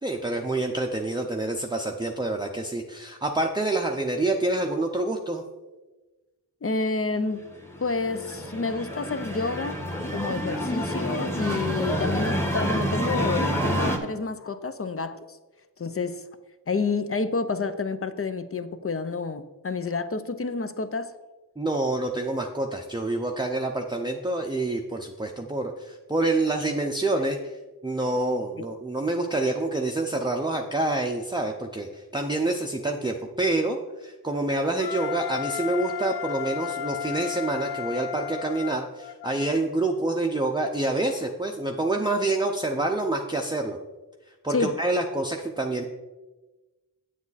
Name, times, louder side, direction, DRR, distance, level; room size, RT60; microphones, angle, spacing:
voice 1, 0.0-5.4 21.6-43.8 44.4-45.8, right 2 dB, 10° right, 1 dB, 0.6 m, -27 dB
voice 2, 6.6-7.4 7.8-9.8 10.1-15.4 15.8-16.2 16.7-21.1 28.6-28.7 44.5-44.7, left 4 dB, 35° left, 11 dB, 0.6 m, -29 dB
sound 1, 7.6-14.0, equal, 5° left, 1.2 m, -28 dB
Wind instrument woodwind instrument, 34.8-39.6, left 9 dB, 80° left, 0.5 m, -33 dB
8.1 x 7.4 x 4.1 m, 1.2 s
wide cardioid pair, 65°, 39 cm